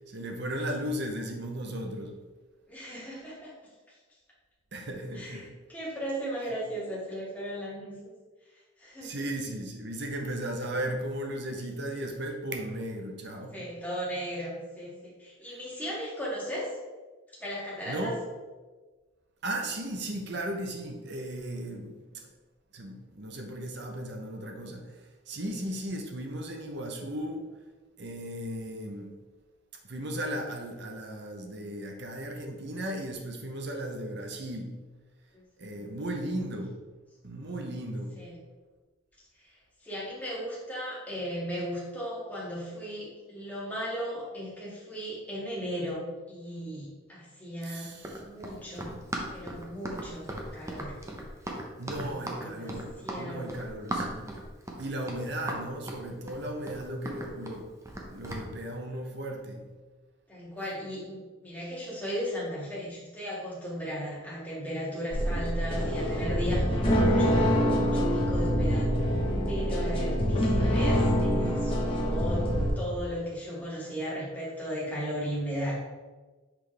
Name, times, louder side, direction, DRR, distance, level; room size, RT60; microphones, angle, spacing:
voice 1, 0.1-2.1 4.7-5.5 9.0-13.7 17.9-18.2 19.4-22.3 22.7-25.0 25.3-27.4 28.0-29.1 29.8-34.7 35.6-36.8 37.2-38.1 47.6-48.2 48.9-49.0 51.8-54.3 54.8-57.7 58.1-59.6, right 1 dB, 55° right, 3 dB, 0.8 m, -36 dB
voice 2, 2.7-3.5 3.9-4.0 5.1-8.1 8.8-9.2 11.6-11.7 13.5-16.8 17.4-18.1 35.3-35.9 38.1-38.4 39.4-39.5 39.8-48.9 49.3-51.0 52.1-53.6 60.3-68.9 69.5-72.5 72.8-76.0, equal, 10° left, -8 dB, 2.0 m, -36 dB
Run, 47.9-58.5, right 1 dB, 15° right, 0.7 m, -38 dB
sound 1, 65.1-72.7, equal, 25° left, 1.0 m, -25 dB
6.0 x 5.2 x 3.3 m, 1.3 s
head